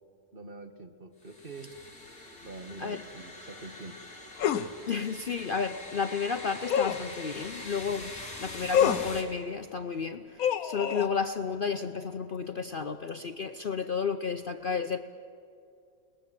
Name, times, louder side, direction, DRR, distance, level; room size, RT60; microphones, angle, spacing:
voice 1, 0.3-1.7 2.4-4.0 7.4-7.5, right 3 dB, 30° right, 6 dB, 1.5 m, -45 dB
sound 1, 1.2-9.2, left 2 dB, 40° left, 3.6 m, -44 dB
sound 2, 4.4-4.7 6.7-7.1 8.7-9.1 10.4-11.1, left 8 dB, 60° left, 1.2 m, -26 dB
voice 2, 4.9-15.0, left 6 dB, 85° left, 7 dB, 0.4 m, -32 dB
30.0 x 19.5 x 7.6 m, 2.5 s
omnidirectional pair, 1.9 m